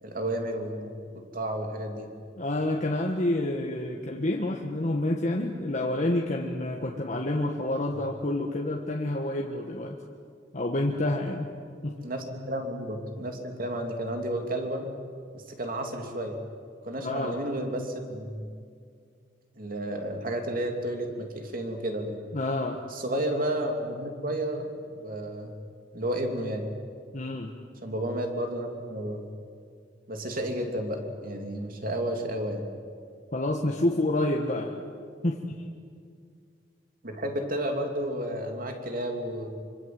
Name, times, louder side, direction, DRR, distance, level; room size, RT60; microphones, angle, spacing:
voice 1, 0.0-2.1 12.0-14.9 15.3-16.4 16.8-18.4 19.6-22.1 22.9-25.5 25.9-26.6 27.8-29.2 30.1-32.6 37.0-39.5, right 1 dB, 50° right, 3 dB, 3.1 m, -32 dB
voice 2, 2.4-10.0 10.5-11.5 11.8-12.0 17.0-17.4 22.3-22.8 27.1-27.5 33.3-34.8 35.2-35.6, left 1 dB, 45° left, 0 dB, 1.6 m, -28 dB
25.5 x 25.0 x 7.9 m, 2.2 s
head